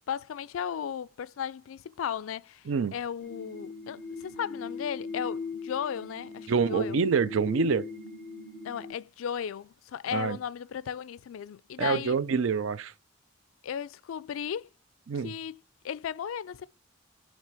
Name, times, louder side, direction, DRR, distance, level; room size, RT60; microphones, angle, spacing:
voice 1, 0.1-7.0 8.6-12.2 13.6-14.7 15.2-16.7, left 8 dB, 85° left, 0.3 m, -35 dB
sound 1, 3.2-8.9, left 4 dB, 50° right, 2.4 m, -39 dB
voice 2, 6.5-7.9 10.1-10.4 11.8-12.9 15.1-15.3, right 5 dB, 75° right, 0.4 m, -26 dB
7.3 x 3.3 x 4.8 m
head